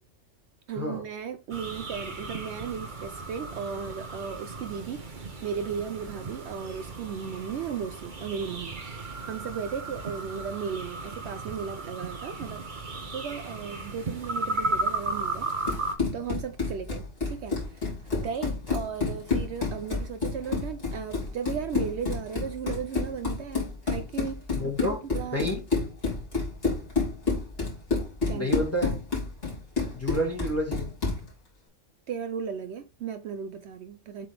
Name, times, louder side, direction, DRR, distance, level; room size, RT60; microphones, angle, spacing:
voice 1, 0.7-12.6 13.1-17.9 18.2-24.4 24.8-24.9 25.1-25.4 28.3-28.6 32.1-34.3, right 7 dB, 65° right, 0.8 m, -36 dB
sound 1, 1.5-15.9, right 2 dB, 40° right, 1.1 m, -35 dB
Run, 15.5-31.3, left 4 dB, 50° left, 3.0 m, -29 dB
voice 2, 24.6-25.0 25.3-25.6 28.3-28.9 29.9-30.9, equal, 10° left, 1.5 m, -29 dB
7.6 x 3.8 x 3.3 m
omnidirectional pair, 1.3 m